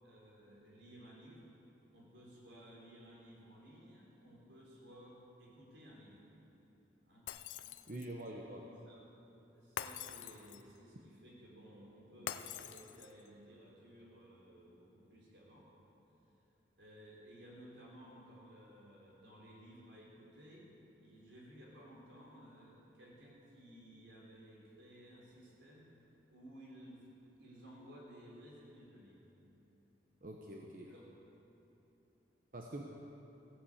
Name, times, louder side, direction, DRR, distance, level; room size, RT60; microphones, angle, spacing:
voice 1, 0.0-1.6 1.9-6.2 7.0-7.3 8.5-9.2 9.5-15.7 16.8-20.7 21.0-25.9 26.3-27.1 27.4-29.3 30.9-31.0, equal, 80° right, -4 dB, 4.0 m, -57 dB
Shatter, 7.3-8.2 9.8-10.8 12.3-13.3, left 9 dB, 85° left, 0.5 m, -45 dB
voice 2, 7.9-8.6 30.2-30.9 32.5-32.8, right 1 dB, 50° right, 0 dB, 0.9 m, -45 dB
15.5 x 8.7 x 8.0 m, 3.0 s
head